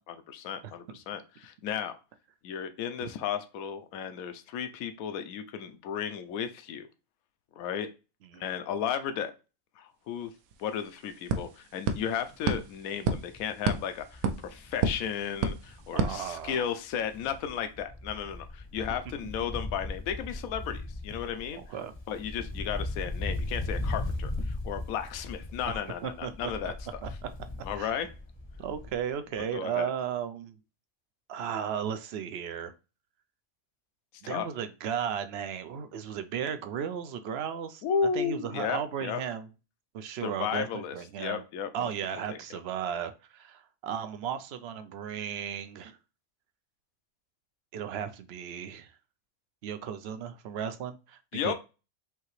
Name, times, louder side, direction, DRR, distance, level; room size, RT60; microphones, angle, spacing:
voice 1, 0.1-2.0 2.4-6.9 7.6-7.9 8.4-9.3 9.8-10.3 10.6-21.6 22.1-27.0 27.6-28.1 29.5-29.9 34.2-34.5 37.8-39.2 40.2-41.9 42.3-42.6 51.3-51.5, left 8 dB, 80° left, 9 dB, 1.0 m, -34 dB
sound 1, 10.2-10.3 10.5-16.9, right 4 dB, 80° right, 1.1 m, -33 dB
Wind, 12.1-12.3 12.7-12.8 13.1-16.6 16.9-29.1 29.4-29.5, left 2 dB, 25° left, 0.7 m, -38 dB
voice 2, 15.9-16.6 19.4-19.5 21.6-21.9 25.7-26.7 27.0-27.1 27.8-28.0 28.6-30.6 31.3-32.7 34.2-37.8 38.1-39.5 39.9-41.4 41.7-46.0 47.7-48.9 49.6-51.5, right 8 dB, 65° right, 10 dB, 0.7 m, -35 dB
5.6 x 2.9 x 3.1 m, 0.31 s
omnidirectional pair, 1.4 m